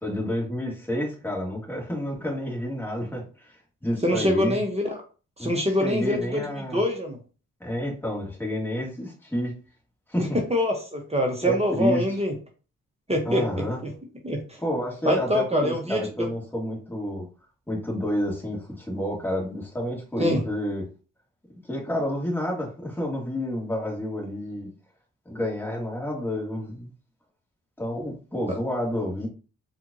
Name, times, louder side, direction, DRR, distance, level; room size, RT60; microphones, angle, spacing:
voice 1, 0.0-4.6 5.4-5.5 5.8-6.8 7.6-9.5 10.1-10.4 11.4-12.0 13.3-13.8 14.6-17.3 17.7-20.9 21.7-24.7 25.3-26.9 27.8-29.3, equal, 5° left, -3 dB, 1.9 m, -29 dB
voice 2, 4.0-5.0 5.4-6.4 6.7-7.2 10.5-12.3 13.1-13.9 14.2-14.6 15.0-16.3 20.2-20.4, left 1 dB, 20° right, 1 dB, 1.0 m, -25 dB
4.2 x 2.5 x 2.8 m, 0.35 s
supercardioid pair, 50°, 33 cm